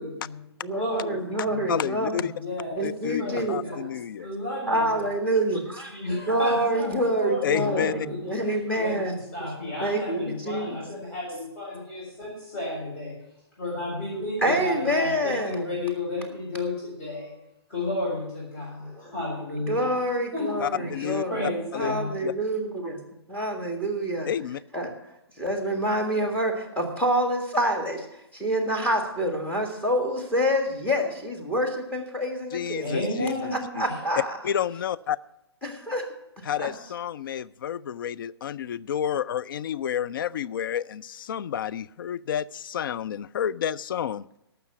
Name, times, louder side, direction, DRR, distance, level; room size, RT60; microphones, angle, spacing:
voice 1, 0.0-0.4 0.7-1.8 2.4-2.8 3.2-3.9 4.2-5.3 5.9-13.2 13.6-17.3 17.7-20.0 20.3-22.2 32.8-33.7, left 1 dB, 35° left, -6 dB, 5.9 m, -32 dB
voice 2, 0.6-2.3 2.8-3.9 4.7-9.1 9.8-10.8 14.4-15.7 18.9-19.0 19.7-21.4 21.7-23.0 23.3-24.3 24.7-24.9 25.4-28.1 28.3-32.9 33.5-34.3 35.6-36.0 36.4-36.7, right 1 dB, 10° left, 3 dB, 1.8 m, -27 dB
voice 3, 1.7-2.3 2.8-4.3 7.4-7.9 20.6-21.2 21.7-21.9 22.2-22.3 24.3-24.6 32.5-33.8 34.4-35.2 36.5-44.2, left 9 dB, 50° left, 16 dB, 0.4 m, -30 dB
14.0 x 6.0 x 8.0 m, 0.86 s
figure-of-eight pair, 125°, 14 cm